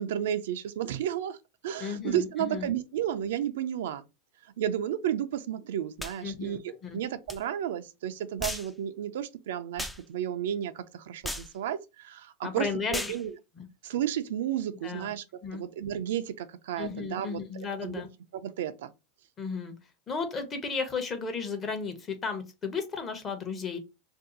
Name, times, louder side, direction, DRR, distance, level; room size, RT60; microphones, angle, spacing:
voice 1, 0.0-1.4 1.6-4.0 4.6-13.3 13.8-15.2 15.5-17.4 17.8-18.0 18.3-18.9, right 10 dB, 85° right, 0.4 m, -32 dB
voice 2, 1.8-2.7 6.2-7.0 12.4-13.1 13.6-13.7 14.8-15.1 15.4-15.6 16.8-18.1 19.4-19.7 20.1-23.8, left 5 dB, 25° left, 0.8 m, -34 dB
sound 1, 6.0-6.2 7.3-7.4 8.4-8.7 9.8-10.0 11.2-11.5 12.9-13.2, left 1 dB, 5° left, 0.3 m, -35 dB
2.7 x 2.3 x 3.8 m
supercardioid pair, 135°, 0 cm